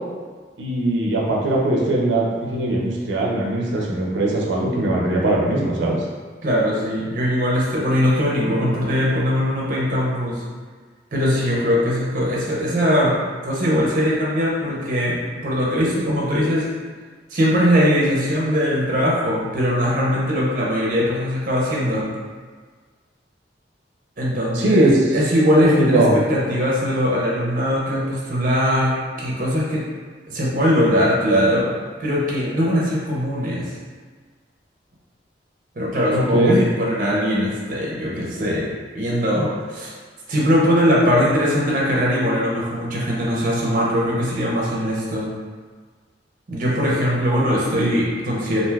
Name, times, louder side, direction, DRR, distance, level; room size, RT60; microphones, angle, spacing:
voice 1, 0.6-6.0 24.5-25.0 25.8-26.1 36.1-36.6, right 1 dB, 90° right, -3 dB, 0.5 m, -20 dB
voice 2, 6.4-10.4 11.1-16.7 17.3-22.1 24.2-29.8 30.3-31.7 32.0-33.7 35.8-39.9 40.3-45.3 46.5-48.6, equal, 45° right, -5 dB, 0.6 m, -20 dB
2.5 x 2.3 x 3.3 m, 1.5 s
head